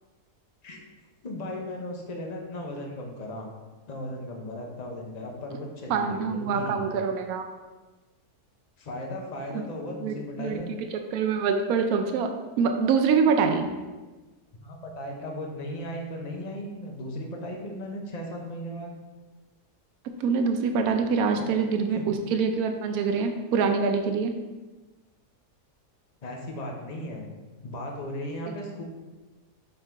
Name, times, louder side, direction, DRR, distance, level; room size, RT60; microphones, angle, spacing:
voice 1, 1.2-3.5 3.9-7.0 8.8-10.8 14.5-18.9 21.9-22.1 26.2-27.3 27.6-28.8, left 1 dB, 35° left, 0 dB, 0.8 m, -36 dB
voice 2, 5.9-7.4 9.5-9.6 10.0-12.3 12.6-13.7 20.2-24.3 28.5-28.6, right 5 dB, 75° right, 5 dB, 1.1 m, -25 dB
5.6 x 3.9 x 4.5 m, 1.2 s
omnidirectional pair, 1.7 m